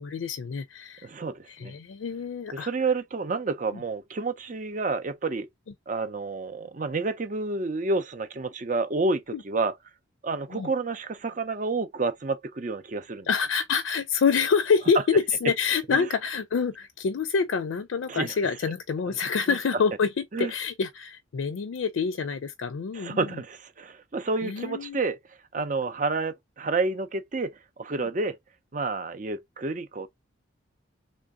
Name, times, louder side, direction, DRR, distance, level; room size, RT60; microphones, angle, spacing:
voice 1, 0.0-1.1 1.5-2.7 10.5-10.7 13.3-20.1 20.4-23.3 24.4-25.0 28.0-28.1, left 5 dB, 75° left, 0.4 m, -26 dB
voice 2, 1.0-1.7 2.5-5.5 5.9-9.7 10.2-13.3 15.9-16.1 18.1-18.4 19.5-19.6 20.3-20.5 22.9-25.2 25.5-27.5 27.8-28.4 28.7-30.1, right 3 dB, 40° right, 0.5 m, -29 dB
3.2 x 2.5 x 3.5 m
head